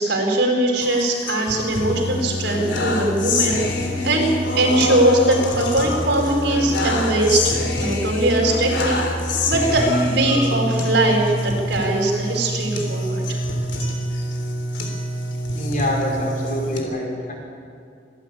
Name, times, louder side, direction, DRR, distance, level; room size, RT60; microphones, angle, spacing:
voice 1, 0.0-3.6 4.0-4.3 4.5-9.0 9.5-13.4, right 1 dB, 75° right, 0 dB, 4.6 m, -20 dB
sound 1, 0.8-16.8, left 1 dB, 85° left, 3.2 m, -25 dB
voice 2, 15.5-17.3, left 1 dB, 45° left, -1 dB, 5.0 m, -25 dB
26.0 x 11.5 x 8.7 m, 2.3 s
head